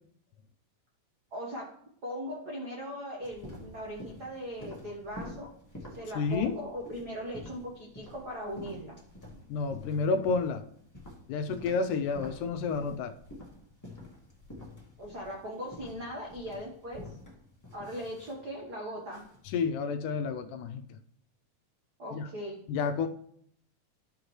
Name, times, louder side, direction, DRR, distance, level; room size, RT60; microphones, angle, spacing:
voice 1, 1.3-1.7 2.0-5.5 6.0-9.0 15.0-17.2 17.7-19.2 22.0-22.6, equal, 75° right, -2 dB, 0.9 m, -39 dB
sound 1, 3.2-19.5, left 1 dB, 20° left, 0.4 m, -48 dB
voice 2, 6.2-6.6 9.5-10.7 11.3-13.1 19.5-20.8 22.1-22.3 22.7-23.1, left 5 dB, 80° left, 8 dB, 2.0 m, -30 dB
13.0 x 5.1 x 3.1 m, 0.66 s
omnidirectional pair, 3.8 m